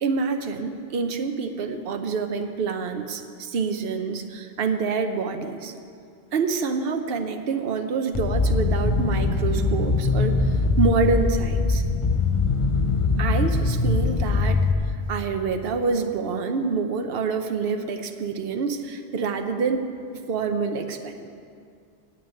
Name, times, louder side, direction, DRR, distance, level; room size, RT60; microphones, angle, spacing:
voice 1, 0.0-5.7 6.3-10.4 10.8-11.8 13.2-14.6 15.1-19.9 20.3-21.3, right 4 dB, 70° right, 6 dB, 1.0 m, -27 dB
sound 1, 8.1-14.7, left 3 dB, 35° left, 0.7 m, -22 dB
9.7 x 8.9 x 8.9 m, 2.3 s
omnidirectional pair, 1.0 m